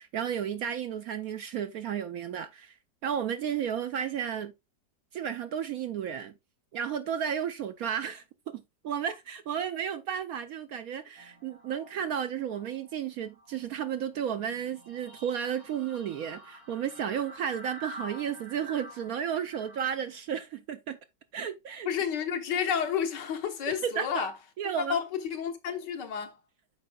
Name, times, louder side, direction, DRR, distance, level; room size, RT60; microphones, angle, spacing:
voice 1, 0.0-4.5 5.1-6.3 6.7-21.0 21.3-21.9 23.7-24.3 24.6-25.0, right 8 dB, 70° right, 0.9 m, -33 dB
sound 1, 11.2-12.9 13.2-20.2, right 2 dB, 90° right, 3.1 m, -48 dB
voice 2, 21.9-24.3 24.9-25.0 25.3-26.4, left 8 dB, 70° left, 1.6 m, -30 dB
12.0 x 4.7 x 2.3 m
omnidirectional pair, 1.9 m